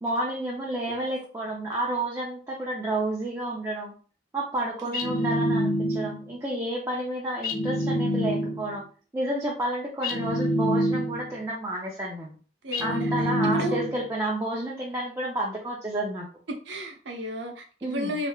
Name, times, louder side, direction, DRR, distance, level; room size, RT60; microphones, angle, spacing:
voice 1, 0.0-3.9 4.3-8.8 9.1-12.4 12.8-16.3 17.8-18.2, right 1 dB, 15° right, 0.5 m, -30 dB
sound 1, 4.9-6.3 7.4-8.8 10.0-11.4 12.7-14.1, equal, 50° left, 0.5 m, -26 dB
voice 2, 12.6-13.9 16.5-18.3, equal, 90° right, 0.8 m, -34 dB
3.3 x 3.1 x 2.3 m
head